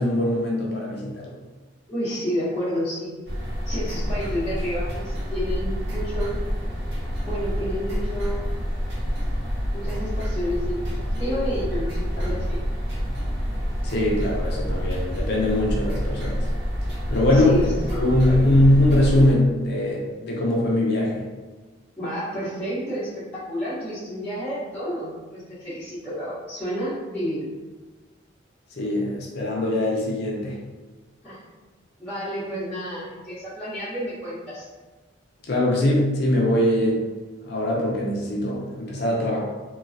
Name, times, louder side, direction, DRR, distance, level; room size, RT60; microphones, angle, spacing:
voice 1, 0.0-1.3 13.8-16.4 17.1-21.2 28.8-30.6 35.5-37.0 37.4-39.4, left 1 dB, 55° left, -3 dB, 0.5 m, -22 dB
voice 2, 1.9-3.1 3.6-6.4 7.2-8.5 9.7-10.9 11.1-12.6 17.3-18.4 22.0-27.5 31.2-31.4 32.0-34.7, equal, 5° left, -18 dB, 1.1 m, -30 dB
sound 1, 3.3-19.3, equal, 60° right, 0.8 m, -27 dB
2.9 x 2.2 x 2.6 m, 1.3 s
head